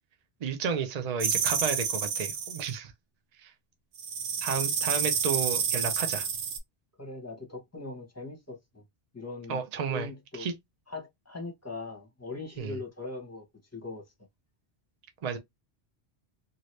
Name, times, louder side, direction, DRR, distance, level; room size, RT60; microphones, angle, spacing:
voice 1, 0.4-2.9 3.4-3.5 4.4-6.3 9.5-10.1 10.4-10.5 12.6-12.8 15.2-15.4, right 6 dB, 50° right, 0.5 m, -32 dB
sound 1, 1.2-2.7 4.0-6.6, right 6 dB, 85° right, 1.0 m, -29 dB
voice 2, 7.0-8.8 9.1-9.6 9.9-10.5 10.9-13.4 13.7-14.0, left 3 dB, 15° left, 0.9 m, -40 dB
2.8 x 2.5 x 3.1 m
omnidirectional pair, 1.1 m